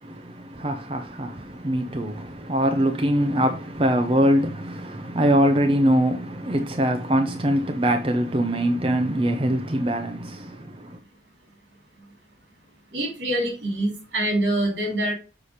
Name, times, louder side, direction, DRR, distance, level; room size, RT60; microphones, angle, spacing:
voice 1, 0.0-11.0, equal, 30° right, 0.7 m, -23 dB
voice 2, 12.9-15.1, right 1 dB, 80° right, 3.2 m, -25 dB
6.9 x 4.4 x 4.9 m
head